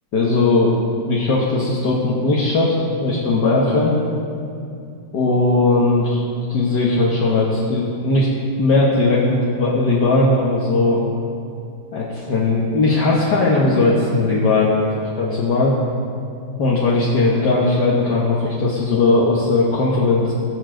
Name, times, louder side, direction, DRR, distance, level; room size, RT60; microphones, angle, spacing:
voice 1, 0.1-0.7 1.1-4.0 5.1-6.2 6.5-8.3 8.6-11.0 11.9-15.8 16.6-20.3, left 2 dB, 60° left, -5 dB, 1.8 m, -18 dB
20.5 x 7.3 x 3.8 m, 2.5 s
omnidirectional pair, 2.1 m